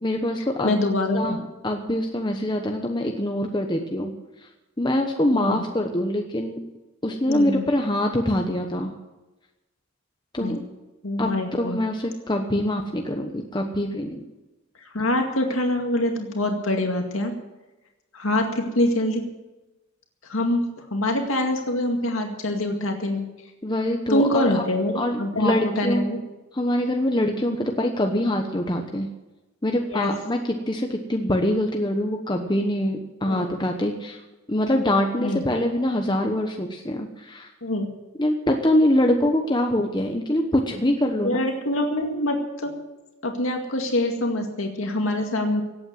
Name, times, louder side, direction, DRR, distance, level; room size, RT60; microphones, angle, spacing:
voice 1, 0.0-0.8 1.1-4.1 4.8-6.6 7.0-8.9 10.3-10.6 11.2-11.3 11.6-14.2 23.6-24.6 24.9-26.0 26.5-29.1 29.6-34.2 34.5-37.5 38.2-41.4, left 1 dB, 20° left, 3 dB, 1.0 m, -24 dB
voice 2, 0.6-1.4 5.3-5.6 7.3-7.7 10.4-10.6 11.0-11.8 14.9-17.3 18.1-19.2 20.3-23.3 24.1-26.2 29.9-30.1 33.2-33.6 35.2-35.4 37.6-37.9 41.2-42.7 43.2-45.6, left 1 dB, 80° left, 3 dB, 2.1 m, -24 dB
17.0 x 8.8 x 7.8 m, 1.1 s
head